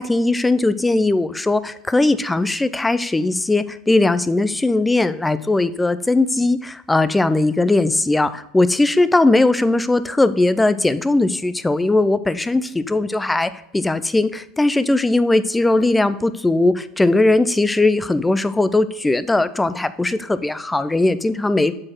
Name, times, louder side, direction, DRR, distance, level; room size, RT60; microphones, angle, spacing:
voice 1, 0.0-21.7, left 2 dB, 10° left, 13 dB, 0.5 m, -19 dB
7.5 x 4.4 x 4.5 m, 0.83 s
hypercardioid pair, 95°, 0 cm